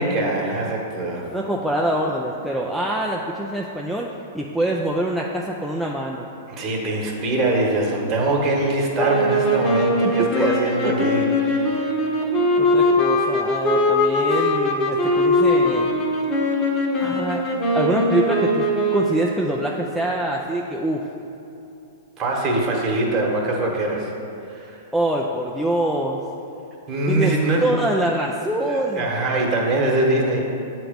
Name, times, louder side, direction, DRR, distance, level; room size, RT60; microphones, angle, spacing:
voice 1, 0.0-1.3 6.5-11.9 22.2-24.1 24.5-24.8 26.9-27.7 28.7-30.4, right 2 dB, 30° right, -1 dB, 1.2 m, -23 dB
voice 2, 1.3-6.3 10.2-10.5 12.6-15.9 17.0-17.5 17.7-18.6 18.9-21.0 24.9-26.2 27.1-27.3 27.6-29.0, right 1 dB, 5° right, -2 dB, 0.4 m, -24 dB
sound 1, 9.0-19.3, left 1 dB, 30° left, 1.0 m, -21 dB
7.9 x 3.0 x 5.1 m, 2.8 s
hypercardioid pair, 130°, 0 cm